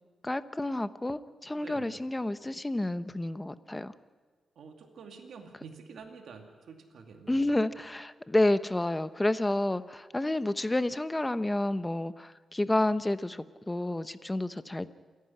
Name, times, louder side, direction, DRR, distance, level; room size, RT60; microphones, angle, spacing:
voice 1, 0.2-3.9 7.3-14.9, left 1 dB, 15° left, 13 dB, 0.9 m, -30 dB
voice 2, 1.6-2.0 4.6-7.5, right 5 dB, 80° right, 3 dB, 2.4 m, -48 dB
28.0 x 11.5 x 9.8 m, 1.5 s
cardioid pair, 90°, 0 cm